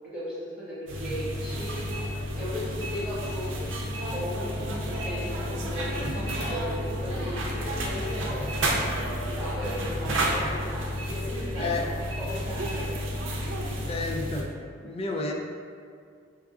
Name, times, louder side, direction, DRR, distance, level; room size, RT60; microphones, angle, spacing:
voice 1, 0.0-1.9 2.4-8.5 9.2-12.9, equal, 5° right, -12 dB, 1.4 m, -37 dB
sound 1, 0.9-14.4, equal, 75° right, 0.6 m, -31 dB
voice 2, 13.9-14.5 14.8-15.3, left 3 dB, 30° left, 1 dB, 0.4 m, -30 dB
4.7 x 3.6 x 2.4 m, 2.2 s
head